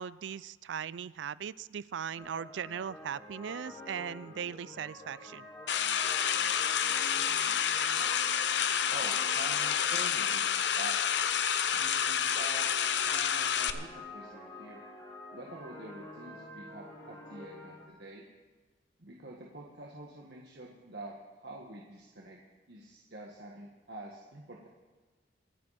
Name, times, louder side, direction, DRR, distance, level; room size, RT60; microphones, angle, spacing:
voice 1, 0.0-5.5, right 8 dB, 85° right, 20 dB, 0.4 m, -39 dB
sound 1, 2.2-17.9, left 2 dB, 25° left, 3.3 m, -48 dB
sound 2, 5.7-13.7, left 8 dB, 70° left, 0.8 m, -29 dB
voice 2, 8.6-11.0 11.7-12.7 13.1-14.8 15.3-18.2 19.0-22.4 22.7-24.7, right 2 dB, 65° right, -2 dB, 1.7 m, -47 dB
25.0 x 9.9 x 4.3 m, 1.3 s
head